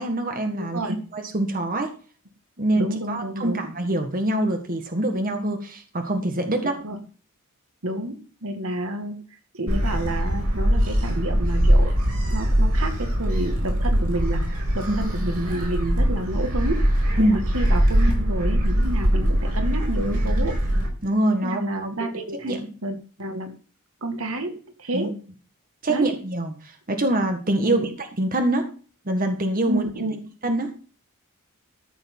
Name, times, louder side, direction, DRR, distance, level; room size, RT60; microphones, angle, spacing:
voice 1, 0.0-0.8 1.1-1.9 2.6-6.8 14.9-15.0 17.2-17.4 21.0-21.7 22.0-22.1 22.4-22.7 24.9-25.1 25.8-28.7 29.0-29.9 30.4-30.7, right 1 dB, 40° right, 5 dB, 1.7 m, -24 dB
voice 2, 0.6-1.0 2.8-3.6 6.6-7.0 7.8-9.2 9.5-11.9 12.3-16.9 17.2-20.6 21.4-23.5 24.0-25.1 25.9-26.1 27.6-27.9 29.7-30.3, right 1 dB, 65° right, 6 dB, 2.0 m, -30 dB
Gull seagull, 9.7-20.9, equal, 80° right, 6.1 m, -22 dB
14.0 x 7.2 x 5.5 m, 0.40 s
head